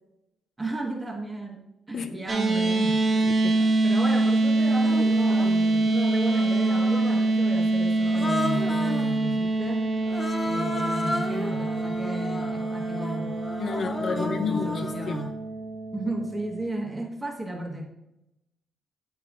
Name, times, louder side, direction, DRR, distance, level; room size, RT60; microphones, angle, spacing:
voice 1, 0.6-1.6 1.9-3.0 3.8-9.9 10.4-13.3 14.1-15.3 15.9-17.9, right 1 dB, 20° right, 1.2 m, -34 dB
sound 1, 2.3-16.7, right 2 dB, 35° right, 0.7 m, -25 dB
voice 2, 3.1-3.6 13.6-15.2, left 5 dB, 55° left, 0.6 m, -32 dB
Human voice, 3.6-3.7 4.7-5.6 6.2-7.3 8.0-9.2 10.1-15.3, left 2 dB, 10° left, 0.6 m, -34 dB
8.5 x 5.2 x 2.5 m
cardioid pair, 90°, 0 cm